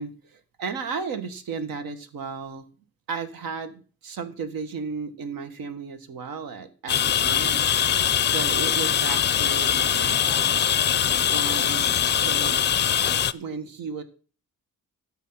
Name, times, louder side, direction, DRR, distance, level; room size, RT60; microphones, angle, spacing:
voice 1, 0.0-2.6 3.1-11.0 11.3-12.6 13.3-14.0, right 5 dB, 85° right, 8 dB, 1.6 m, -35 dB
sound 1, 6.9-13.3, left 9 dB, 30° left, 0.4 m, -22 dB
11.0 x 8.4 x 5.7 m, 0.39 s
cardioid pair, 140°, 35 cm